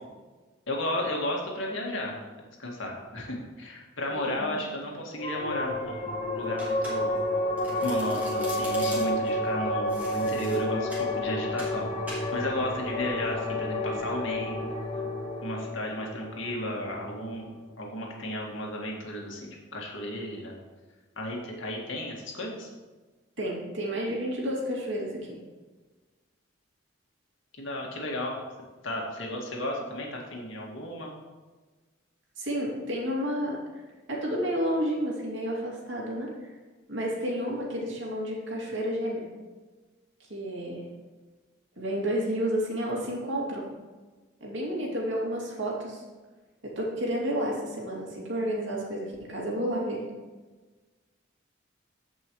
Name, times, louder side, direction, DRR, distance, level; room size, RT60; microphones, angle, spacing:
voice 1, 0.7-6.0 6.3-7.2 7.8-11.9 12.3-14.6 15.4-17.5 17.8-20.6 21.2-22.7 27.5-28.4 28.8-31.1, left 1 dB, 75° left, -1 dB, 2.0 m, -33 dB
voice 2, 4.1-4.5 23.4-25.4 32.4-33.8 34.1-36.3 36.9-39.3 40.2-40.8 41.8-43.7 44.4-46.0 46.8-50.0, equal, 70° right, -3 dB, 2.6 m, -31 dB
sound 1, 5.2-18.0, left 1 dB, 30° left, 0.9 m, -31 dB
Domestic sounds home sounds, 6.6-7.3 7.6-9.3 9.9-11.1 11.6-11.8 12.1-12.3, equal, 10° right, 2.7 m, -42 dB
14.5 x 5.5 x 3.2 m, 1.3 s
head